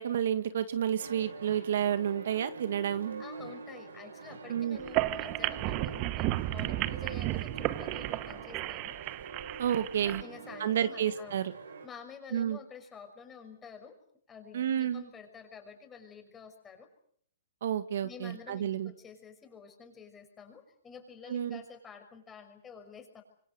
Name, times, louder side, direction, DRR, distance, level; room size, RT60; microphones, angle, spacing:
voice 1, 0.0-3.2 4.5-4.8 9.6-10.2 10.6-11.5 12.3-12.6 14.5-15.0 17.6-18.9 21.3-21.6, right 9 dB, 65° right, 11 dB, 1.8 m, -30 dB
sound 1, 1.0-11.9, right 4 dB, 85° right, 6.3 m, -45 dB
voice 2, 3.2-9.0 10.2-11.4 11.8-14.0 14.3-16.9 18.0-23.2, left 6 dB, 20° left, 5 dB, 6.1 m, -50 dB
sound 2, 4.8-10.2, right 17 dB, 35° right, 1.0 m, -33 dB
26.5 x 23.5 x 6.7 m, 0.64 s
hypercardioid pair, 130°, 0 cm